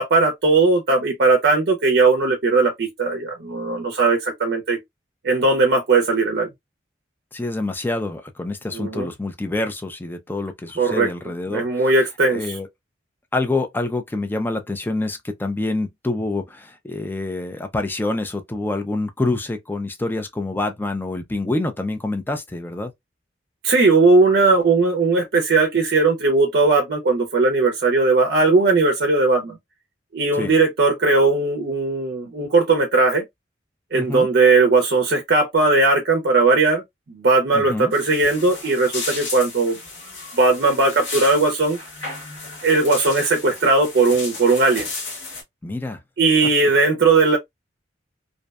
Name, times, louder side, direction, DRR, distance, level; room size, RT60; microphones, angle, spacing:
voice 1, 0.0-4.8 5.2-6.5 8.7-9.1 10.8-11.1 11.5-12.6 23.6-29.6 30.1-33.2 33.9-36.8 37.1-39.8 40.3-41.8 42.6-44.9 46.2-47.4, right 3 dB, 60° right, 0.5 m, -18 dB
voice 2, 7.3-11.9 12.3-12.7 13.3-22.9 30.3-30.5 33.9-34.3 37.5-37.9 45.6-46.0, left 2 dB, 10° left, 0.3 m, -26 dB
sound 1, 37.9-45.4, left 3 dB, 85° left, 1.1 m, -34 dB
2.6 x 2.1 x 2.3 m
head